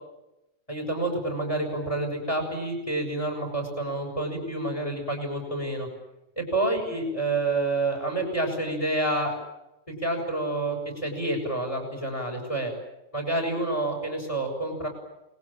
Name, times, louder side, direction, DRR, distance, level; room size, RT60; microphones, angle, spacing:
voice 1, 0.7-5.9 6.4-9.3 10.0-12.7 13.1-14.9, right 2 dB, 25° left, 1 dB, 7.0 m, -28 dB
29.5 x 21.0 x 9.0 m, 0.93 s
omnidirectional pair, 1.3 m